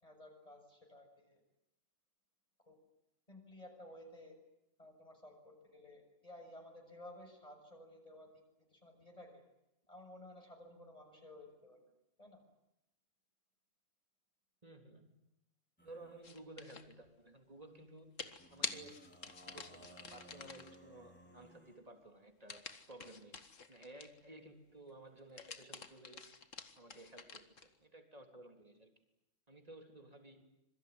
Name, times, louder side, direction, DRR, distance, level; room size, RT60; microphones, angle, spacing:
voice 1, 0.0-1.4 2.7-2.8 3.3-4.4 4.8-8.4 8.7-9.4 9.9-11.8 12.2-12.4, left 1 dB, 25° left, 3 dB, 6.8 m, -55 dB
voice 2, 14.6-15.2 15.8-18.2 18.5-19.0 19.5-26.3 26.8-28.9 29.5-30.6, right 2 dB, 30° right, 5 dB, 3.7 m, -55 dB
sound 1, 15.8-16.3 18.4-21.8, equal, 10° left, 3.7 m, -59 dB
sound 2, 16.2-16.9 18.2-20.8 22.5-24.3 25.2-27.7, left 5 dB, 70° left, 2.0 m, -47 dB
26.5 x 23.0 x 9.8 m, 0.88 s
omnidirectional pair, 1.4 m